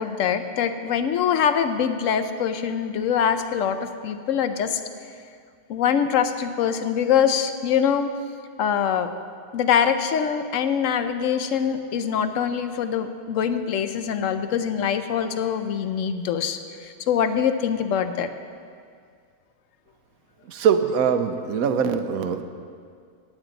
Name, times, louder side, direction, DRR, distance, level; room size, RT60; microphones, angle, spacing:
voice 1, 0.0-4.8 5.7-8.1 8.6-9.1 9.5-18.3, left 8 dB, 70° left, 10 dB, 1.0 m, -24 dB
voice 2, 20.5-22.4, right 7 dB, 85° right, 8 dB, 1.2 m, -22 dB
17.0 x 9.0 x 4.0 m, 2.2 s
omnidirectional pair, 1.4 m